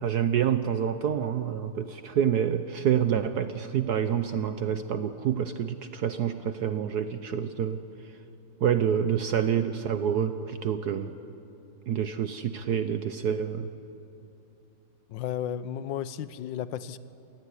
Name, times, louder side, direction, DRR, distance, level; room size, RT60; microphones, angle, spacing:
voice 1, 0.0-7.8 8.6-11.1 11.9-13.7, right 8 dB, 65° right, 10 dB, 1.2 m, -27 dB
voice 2, 15.1-17.0, left 10 dB, 80° left, 15 dB, 1.5 m, -33 dB
27.0 x 19.0 x 9.7 m, 2.8 s
omnidirectional pair, 2.1 m